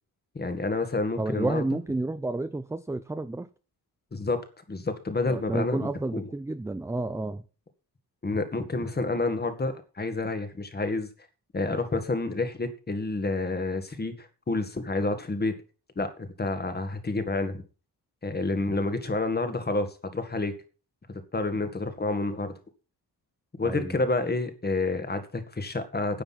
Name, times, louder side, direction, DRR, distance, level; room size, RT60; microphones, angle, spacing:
voice 1, 0.4-1.6 4.1-4.4 4.7-6.3 8.2-11.1 11.5-15.5 16.0-17.6 18.2-19.9 20.1-20.5 21.3-22.5 23.6-26.2, left 3 dB, 25° left, 1.9 m, -29 dB
voice 2, 1.2-3.5 5.3-7.4 23.6-24.0, right 2 dB, 5° right, 0.5 m, -30 dB
10.5 x 9.7 x 5.8 m
wide cardioid pair, 160°, 39 cm